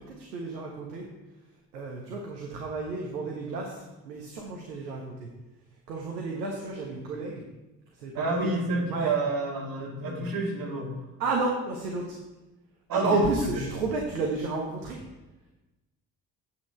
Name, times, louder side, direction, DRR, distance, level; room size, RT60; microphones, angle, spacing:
voice 1, 0.2-1.1 1.7-5.3 5.9-7.4 8.0-8.5 8.9-9.1 11.2-12.2 12.9-15.0, right 3 dB, 75° right, 0 dB, 1.3 m, -31 dB
voice 2, 8.1-10.9 12.9-13.5, right 3 dB, 45° right, -1 dB, 3.0 m, -29 dB
8.7 x 8.0 x 4.5 m, 1.0 s
figure-of-eight pair, 55°, 49 cm